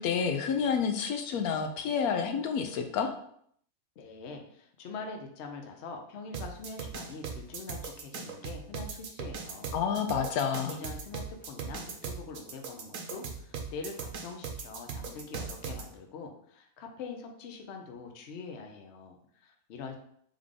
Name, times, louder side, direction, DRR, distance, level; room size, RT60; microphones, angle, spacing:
voice 1, 0.0-3.1 9.7-10.7, left 6 dB, 85° left, 6 dB, 1.1 m, -29 dB
voice 2, 4.0-9.7 10.5-20.0, left 4 dB, 60° left, 3 dB, 0.9 m, -44 dB
sound 1, 6.3-15.8, right 6 dB, 75° right, 1.1 m, -38 dB
3.6 x 3.4 x 3.6 m, 0.66 s
omnidirectional pair, 1.5 m